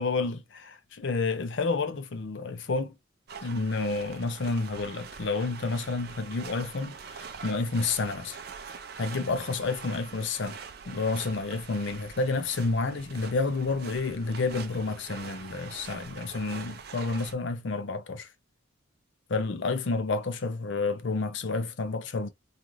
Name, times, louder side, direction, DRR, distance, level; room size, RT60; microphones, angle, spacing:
voice 1, 0.0-2.9 3.4-8.4 8.7-10.6 10.9-18.3 19.3-22.3, left 3 dB, 60° left, 0.5 m, -30 dB
sound 1, 3.3-17.3, right 6 dB, 50° right, 0.4 m, -44 dB
2.5 x 2.5 x 3.0 m
head